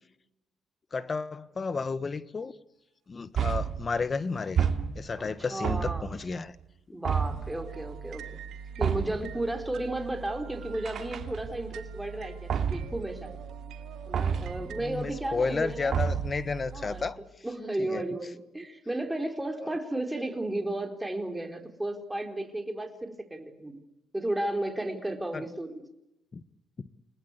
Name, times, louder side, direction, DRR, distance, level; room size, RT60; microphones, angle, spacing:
voice 1, 0.9-2.5 3.1-4.7 4.9-6.5 14.8-17.2 17.9-18.0 19.6-19.8 25.3-25.4 26.3-26.4 26.8-26.9, left 4 dB, 35° left, 1.4 m, -32 dB
sound 1, 3.3-3.9 4.6-5.2 5.6-6.3 7.0-7.5 8.8-9.3 10.8-11.6 12.5-13.0 14.1-14.6 15.9-16.4, right 7 dB, 60° right, 2.8 m, -29 dB
voice 2, 5.1-6.2 6.9-8.4 8.8-13.4 14.1-15.9 16.7-17.0 17.4-23.8 24.1-25.9, right 1 dB, 10° right, 4.1 m, -34 dB
sound 2, 7.1-17.1, right 7 dB, 80° right, 1.9 m, -43 dB
29.5 x 19.5 x 8.4 m
cardioid pair, 90°, 0 cm